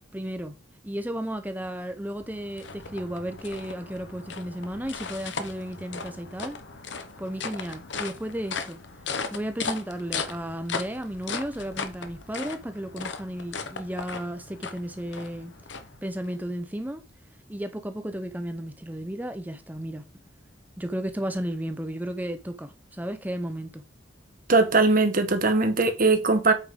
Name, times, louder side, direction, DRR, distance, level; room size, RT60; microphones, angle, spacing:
voice 1, 0.1-0.5 0.8-6.6 7.2-8.8 9.3-15.5 16.0-17.0 17.5-20.0 20.8-23.8, right 1 dB, 10° right, 0.8 m, -33 dB
sound 1, 1.9-16.4, left 5 dB, 65° left, 0.9 m, -37 dB
voice 2, 24.5-26.5, right 3 dB, 45° right, 1.2 m, -20 dB
8.2 x 5.4 x 3.8 m
head